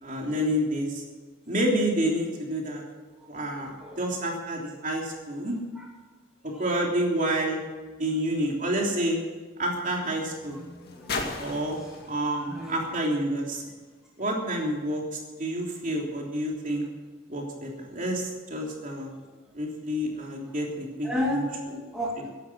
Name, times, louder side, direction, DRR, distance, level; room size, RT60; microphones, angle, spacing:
voice 1, 0.0-1.0 1.5-2.8 3.3-5.6 6.6-7.6 8.0-9.2 9.6-10.6 11.4-11.8 12.1-13.6 14.2-16.8 17.3-19.1 19.5-21.4, right 1 dB, 40° right, -1 dB, 3.3 m, -29 dB
voice 2, 3.6-4.0 5.7-5.9 6.5-6.8 11.0-11.2 11.8-12.1 12.5-12.9 18.6-18.7 19.2-19.3 20.5-20.6 21.0-22.3, left 1 dB, 5° right, -4 dB, 2.5 m, -34 dB
sound 1, 7.8-14.1 14.9-15.0, left 3 dB, 50° left, 2.3 m, -40 dB
17.0 x 11.0 x 6.3 m, 1.3 s
head